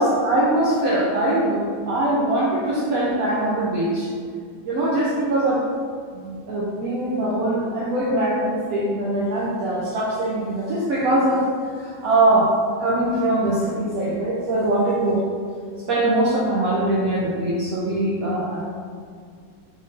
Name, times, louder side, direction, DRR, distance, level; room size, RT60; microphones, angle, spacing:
voice 1, 0.0-4.1 4.6-5.6 6.2-11.5 11.7-12.5 12.8-15.2 15.9-18.6, right 1 dB, 70° right, -6 dB, 0.9 m, -22 dB
3.8 x 2.6 x 3.6 m, 2.1 s
omnidirectional pair, 2.0 m